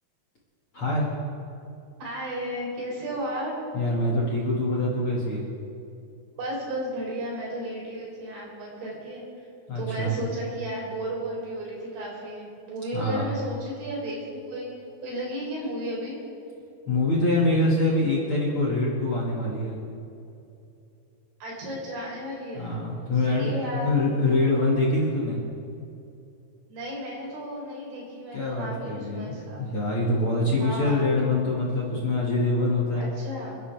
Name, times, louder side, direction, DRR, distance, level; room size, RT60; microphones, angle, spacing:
voice 1, 0.7-1.1 3.7-5.5 9.7-10.2 12.9-13.3 16.9-19.8 22.5-23.5 23.8-25.4 28.3-33.1, left 2 dB, 40° left, -5 dB, 2.3 m, -25 dB
voice 2, 2.0-3.5 6.4-9.5 9.8-14.7 15.0-16.2 21.4-22.8 23.3-23.9 26.7-29.6 30.6-31.0 32.9-33.6, equal, 80° right, -4 dB, 6.3 m, -34 dB
28.0 x 11.0 x 3.6 m, 2.7 s
omnidirectional pair, 5.1 m